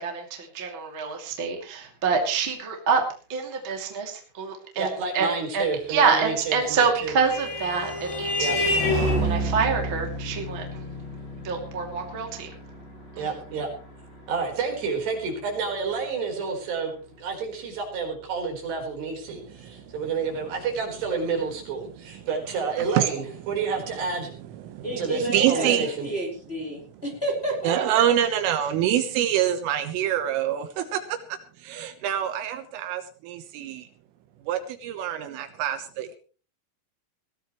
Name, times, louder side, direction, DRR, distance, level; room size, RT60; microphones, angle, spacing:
voice 1, 0.0-3.0 3.3-4.9 5.1-5.3 5.5-10.8 11.4-12.5, right 5 dB, 30° right, 2 dB, 2.5 m, -26 dB
voice 2, 4.8-7.1 8.4-8.6 13.2-13.7 14.3-16.9 17.2-24.3 25.0-26.1, right 5 dB, 55° right, 2 dB, 6.3 m, -29 dB
Vehicle horn car horn honking, 6.7-15.7, equal, 55° left, 10.0 m, -29 dB
voice 3, 19.3-20.0 23.0-23.1 23.4-23.6 24.3-25.9 26.7-27.0 27.6-33.9 34.4-36.2, right 11 dB, 80° right, 8 dB, 3.6 m, -26 dB
voice 4, 24.8-27.7, right 1 dB, 10° left, 0 dB, 4.2 m, -30 dB
21.0 x 16.0 x 3.2 m, 0.39 s
omnidirectional pair, 5.9 m